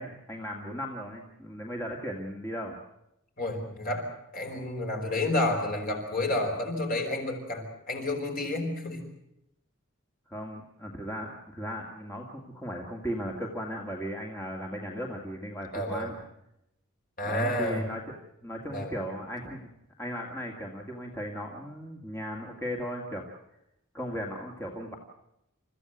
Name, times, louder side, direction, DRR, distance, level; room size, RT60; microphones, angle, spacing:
voice 1, 0.0-2.8 10.3-16.2 17.2-18.0 18.4-19.7 20.0-23.2 23.9-25.0, equal, 10° left, 0 dB, 2.2 m, -36 dB
voice 2, 3.4-9.0 15.7-16.1 17.2-17.8 18.7-18.9, left 1 dB, 40° left, 2 dB, 5.0 m, -30 dB
29.5 x 14.5 x 8.1 m, 0.82 s
head